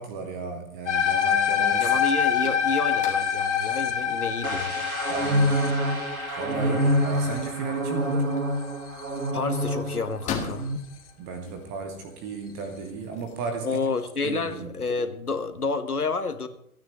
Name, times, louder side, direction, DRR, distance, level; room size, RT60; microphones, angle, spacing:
voice 1, 0.0-1.9 5.1-5.8 6.4-8.3 11.2-13.8 14.2-14.7, right 4 dB, 10° right, 6 dB, 0.5 m, -35 dB
sound 1, 0.9-9.3, left 8 dB, 50° left, 2.1 m, -26 dB
sound 2, 1.4-13.7, left 6 dB, 15° left, 1.8 m, -43 dB
voice 2, 1.8-4.9 6.6-6.9 9.3-10.7 13.6-16.5, left 4 dB, 85° left, 9 dB, 1.5 m, -30 dB
sound 3, 4.4-10.2 10.5-10.8, right 1 dB, 75° right, 2.1 m, -26 dB
27.5 x 9.5 x 3.1 m, 0.73 s
figure-of-eight pair, 120°, 44 cm